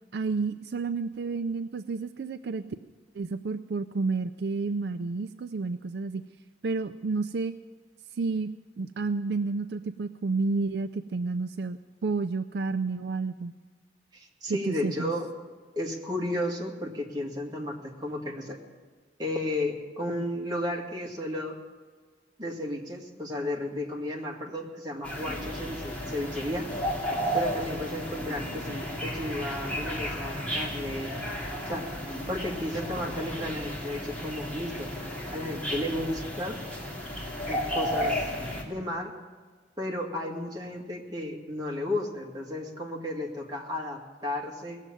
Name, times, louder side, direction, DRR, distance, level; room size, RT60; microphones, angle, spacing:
voice 1, 0.1-2.6 3.1-6.2 6.6-7.5 8.1-13.6 14.5-15.1, right 4 dB, 65° right, 10 dB, 0.4 m, -30 dB
voice 2, 14.1-15.3 15.8-18.6 19.2-21.6 22.4-26.7 27.3-31.1 31.7-31.9 32.3-34.9 35.3-36.6 37.5-38.3 38.6-39.1 39.8-44.8, left 1 dB, 25° right, -1 dB, 2.0 m, -33 dB
sound 1, 25.0-38.6, equal, 10° left, 2.4 m, -33 dB
19.0 x 7.4 x 9.1 m, 1.5 s
head